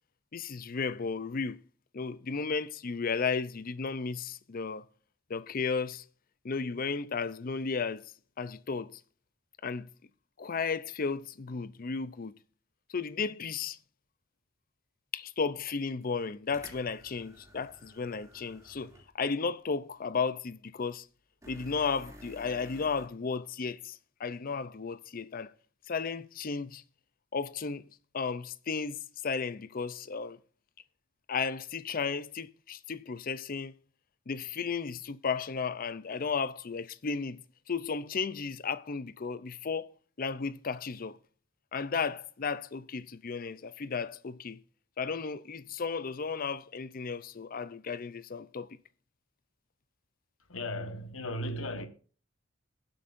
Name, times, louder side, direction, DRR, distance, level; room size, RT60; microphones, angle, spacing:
voice 1, 0.3-1.6 1.9-4.9 5.3-6.0 6.4-9.0 9.6-9.9 10.4-12.3 12.9-13.8 15.1-21.1 21.5-25.5 25.9-26.8 27.3-27.9 28.1-30.4 31.3-33.7 34.3-41.2 41.7-44.6 45.0-48.7, left 5 dB, 45° left, 0.5 m, -34 dB
sound 1, 16.0-16.1 16.5-19.1 19.5-19.6 21.4-23.1, equal, 15° right, 2.6 m, -52 dB
voice 2, 50.4-51.9, left 1 dB, 85° left, 1.3 m, -36 dB
22.5 x 7.8 x 2.6 m
head